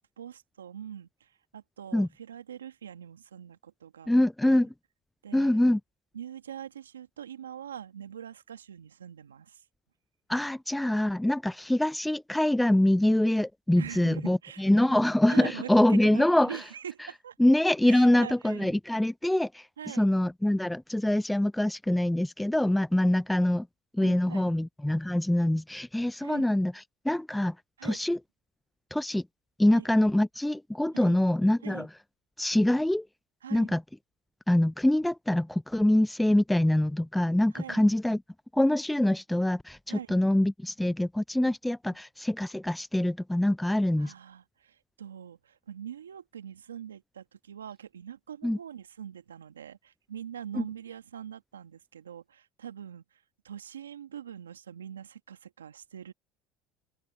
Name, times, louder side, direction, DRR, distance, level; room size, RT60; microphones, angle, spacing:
voice 1, 0.0-4.1 4.4-4.6 5.2-5.8 6.1-9.6 13.7-14.7 15.3-17.3 17.8-18.7 19.8-20.1 24.0-24.5 26.2-26.5 27.8-28.0 29.7-29.9 30.9-31.2 31.6-31.9 33.4-33.7 37.5-37.9 39.9-40.2 44.0-56.1, right 9 dB, 90° right, 1.5 m, -43 dB
voice 2, 4.1-4.7 5.3-5.8 10.3-16.6 17.4-23.7 23.9-26.7 27.0-27.6 27.8-28.2 28.9-29.2 29.6-31.9 32.4-33.1 33.5-33.8 34.5-38.2 38.5-44.1 48.4-48.6 50.6-50.7, left 1 dB, 5° left, 0.3 m, -24 dB
open air
hypercardioid pair, 70°, 0 cm